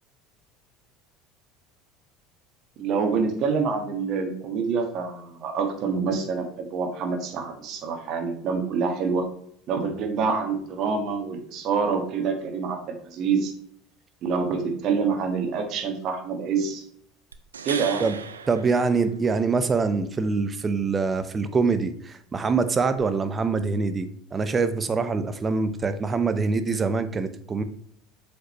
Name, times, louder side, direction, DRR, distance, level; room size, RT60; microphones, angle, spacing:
voice 1, 2.8-9.2 9.7-13.5 14.2-16.8 17.6-18.1, right 5 dB, 50° right, 4 dB, 1.5 m, -26 dB
sound 1, 17.3-19.6 23.0-23.1, right 6 dB, 85° right, 0.5 m, -37 dB
voice 2, 18.5-27.6, right 4 dB, 25° right, 11 dB, 0.8 m, -24 dB
7.7 x 5.2 x 3.1 m, 0.64 s
hypercardioid pair, 70°, 0 cm